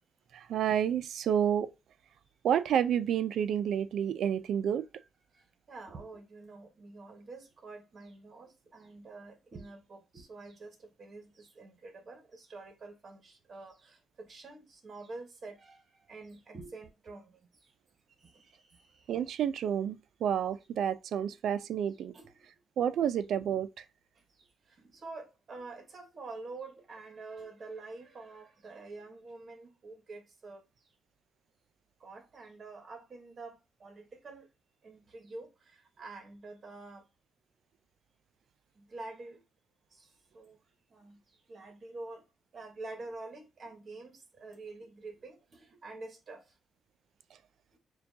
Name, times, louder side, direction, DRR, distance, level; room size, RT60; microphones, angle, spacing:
voice 1, 0.3-1.7 2.4-4.9 19.1-22.1 22.8-23.8, right 9 dB, 70° right, 0.3 m, -29 dB
voice 2, 5.3-17.7 18.2-19.1 21.9-22.4 24.4-30.6 32.0-34.5 34.8-37.1 38.7-39.4 39.9-40.6 40.9-41.2 41.5-42.2 42.5-46.5, right 3 dB, 35° right, 1.1 m, -47 dB
6.8 x 2.3 x 2.7 m
cardioid pair, 150°, 0 cm